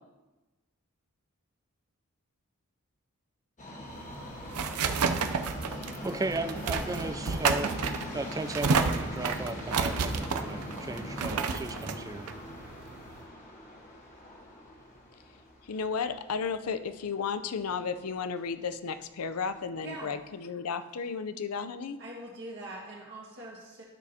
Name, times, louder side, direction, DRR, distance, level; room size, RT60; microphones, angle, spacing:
Subway metro underground, 3.6-17.7 18.0-18.1 18.9-19.0 19.3-19.4 20.0-20.1, equal, 35° left, 1.3 m, -42 dB
sound 1, 3.9-13.2, right 5 dB, 85° right, 0.6 m, -31 dB
voice 1, 6.0-12.3, right 2 dB, 15° right, 10 dB, 0.3 m, -36 dB
voice 2, 15.7-22.0, left 5 dB, 80° left, 11 dB, 0.5 m, -33 dB
voice 3, 19.8-20.2 22.0-23.8, right 1 dB, 50° right, -4 dB, 1.8 m, -43 dB
12.5 x 6.3 x 2.8 m, 1.1 s
head